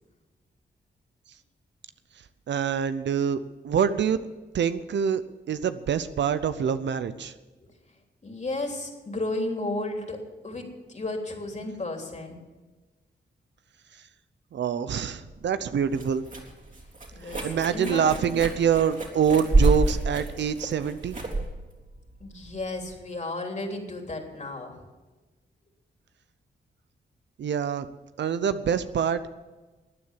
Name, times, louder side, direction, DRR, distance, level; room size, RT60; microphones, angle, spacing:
voice 1, 2.5-4.2 4.5-5.2 5.5-7.3 14.5-16.2 17.4-21.2 27.4-27.9 28.2-29.3, right 7 dB, 75° right, 12 dB, 0.8 m, -25 dB
voice 2, 8.2-10.2 10.4-12.4 17.1-17.5 17.7-18.4 22.2-24.8, left 2 dB, 40° left, 3 dB, 3.2 m, -33 dB
sound 1, 15.2-22.9, right 2 dB, 45° right, 3.5 m, -28 dB
15.0 x 9.7 x 7.4 m, 1.2 s
cardioid pair, 60°, 18 cm